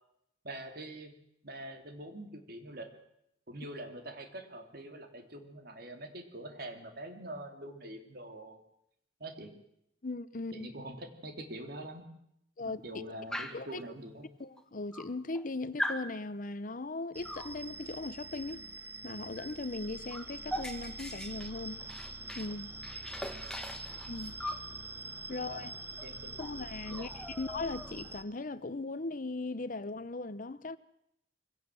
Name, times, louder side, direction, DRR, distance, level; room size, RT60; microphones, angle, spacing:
voice 1, 0.4-1.1 1.4-2.9 3.5-8.6 9.2-9.5 10.5-12.1 12.6-14.2 23.2-23.5 25.3-25.7 26.0-26.4 26.9-27.1, right 1 dB, 60° right, 3.1 m, -44 dB
voice 2, 10.0-10.7 12.6-12.8 13.5-13.8 14.4-18.6 19.0-21.8 22.3-22.7 24.1-24.4 25.3-25.7 26.4-30.8, left 3 dB, 50° left, 0.9 m, -38 dB
Dog, 13.3-13.7 14.6-14.7 14.9-15.5 15.8-16.1 17.3-17.6 19.4-19.5 19.8-22.5 22.8-24.7 26.0-26.1 26.4-26.6 26.9-28.1, left 1 dB, 5° left, 1.6 m, -40 dB
sound 1, 17.1-28.2, right 2 dB, 15° right, 0.9 m, -45 dB
24.0 x 17.0 x 7.7 m
head